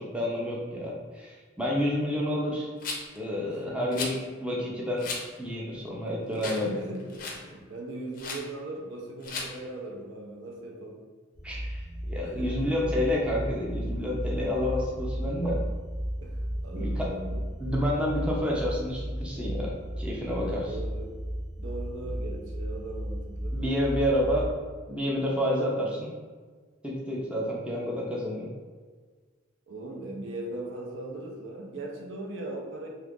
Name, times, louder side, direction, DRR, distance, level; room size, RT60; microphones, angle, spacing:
voice 1, 0.0-2.7 3.1-5.1 5.4-6.7 11.4-15.6 16.7-17.1 17.6-20.8 23.5-24.5 24.9-26.1 26.8-28.5, left 1 dB, 5° right, -4 dB, 0.5 m, -29 dB
Rattle, 2.8-3.2 3.9-4.2 5.0-5.2 5.7-5.8 6.4-6.7 6.9-7.4 8.2-8.4 9.2-9.5, left 3 dB, 45° left, 0.5 m, -35 dB
voice 2, 6.4-11.0 12.2-12.7 16.2-17.4 20.4-21.1 21.6-23.6 29.7-32.9, right 2 dB, 65° right, 0 dB, 0.6 m, -39 dB
sound 1, 11.3-24.5, equal, 40° right, 0.9 m, -34 dB
2.9 x 2.4 x 3.6 m, 1.5 s
head